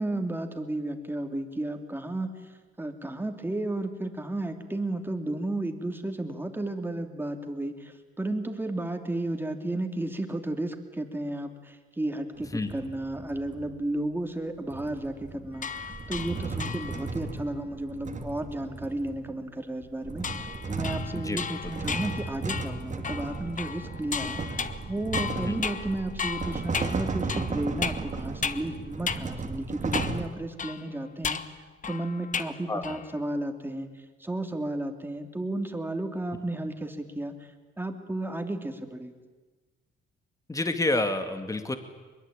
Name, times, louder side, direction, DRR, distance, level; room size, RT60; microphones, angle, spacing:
voice 1, 0.0-2.3 2.8-31.4 31.9-33.9 34.2-37.3 37.8-39.1, right 1 dB, 10° right, 5 dB, 3.0 m, -33 dB
sound 1, 12.4-13.7 14.7-19.3 19.8-30.3, right 4 dB, 40° right, 2.5 m, -35 dB
sound 2, 15.6-17.2 20.2-28.7 29.1-29.2 29.9-30.3 30.6-32.6 32.8-33.2, left 6 dB, 40° left, 1.3 m, -35 dB
voice 2, 40.5-41.8, left 2 dB, 15° left, 7 dB, 2.3 m, -28 dB
22.5 x 22.5 x 9.0 m, 1.3 s
cardioid pair, 90°, 20 cm